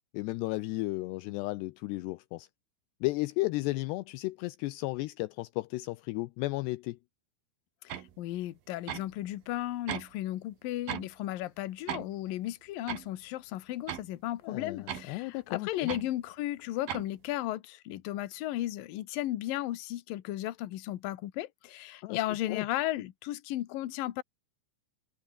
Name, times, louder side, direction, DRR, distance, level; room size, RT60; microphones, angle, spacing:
voice 1, 0.1-2.5 3.0-7.0 14.4-15.9 22.0-22.2 22.5-22.6, left 21 dB, 85° left, 2.4 m, -34 dB
voice 2, 7.8-24.2, left 14 dB, 65° left, 2.4 m, -35 dB
sound 1, 7.9-8.1 8.9-9.2 9.9-10.1 10.9-11.1 11.9-12.1 12.9-13.1 13.9-14.1 14.9-15.1 15.9-16.1 16.9-17.1, right 11 dB, 60° right, 2.9 m, -37 dB
omnidirectional pair, 5.5 m